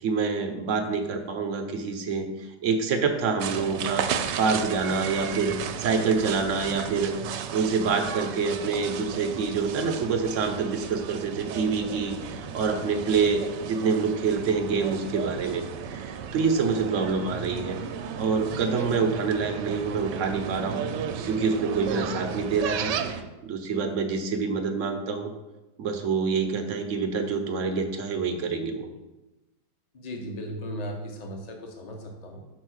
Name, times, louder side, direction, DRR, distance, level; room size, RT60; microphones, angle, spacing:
voice 1, 0.0-4.1 4.4-17.8 18.2-20.8 21.2-25.3 25.8-28.9, right 5 dB, 60° right, 6 dB, 0.9 m, -27 dB
sound 1, 3.4-23.2, right 8 dB, 85° right, 1.2 m, -34 dB
voice 2, 29.9-32.4, equal, 30° left, 2 dB, 0.9 m, -36 dB
5.6 x 4.4 x 6.3 m, 1.1 s
omnidirectional pair, 1.8 m